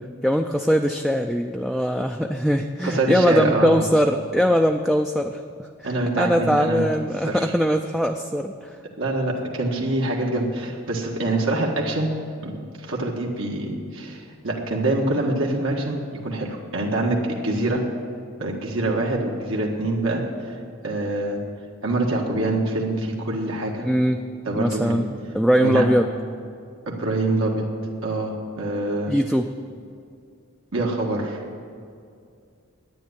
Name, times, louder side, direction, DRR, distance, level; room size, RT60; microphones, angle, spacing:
voice 1, 0.2-8.5 17.6-17.7 23.8-24.2 24.6-25.0 25.3-26.1 29.1-29.5, equal, ahead, 3 dB, 0.4 m, -21 dB
voice 2, 2.8-3.8 5.8-6.9 7.3-7.4 9.0-12.1 12.4-12.5 12.8-17.8 18.4-20.2 20.8-21.4 21.8-23.9 24.4-25.0 25.6-25.8 26.9-27.7 28.0-29.1 30.7-31.4, right 2 dB, 80° right, -1 dB, 1.6 m, -25 dB
10.5 x 9.5 x 9.8 m, 2.4 s
head